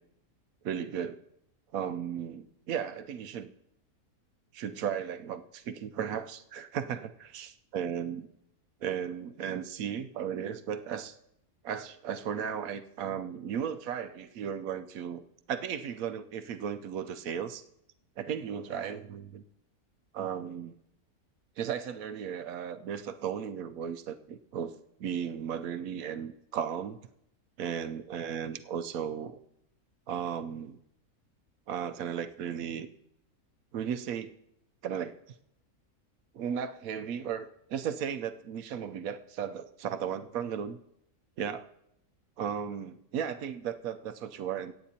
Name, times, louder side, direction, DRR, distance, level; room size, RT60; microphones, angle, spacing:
voice 1, 0.6-1.2 1.7-3.5 4.5-8.2 8.8-11.2 11.6-17.6 18.2-19.4 20.1-20.8 21.6-24.7 25.0-27.0 27.6-29.4 30.1-30.8 31.7-32.9 33.7-34.3 34.8-35.1 36.3-40.8 41.4-41.7 42.4-44.7, right 8 dB, 75° right, 10 dB, 1.0 m, -35 dB
23.5 x 9.1 x 2.8 m, 0.78 s
omnidirectional pair, 1.5 m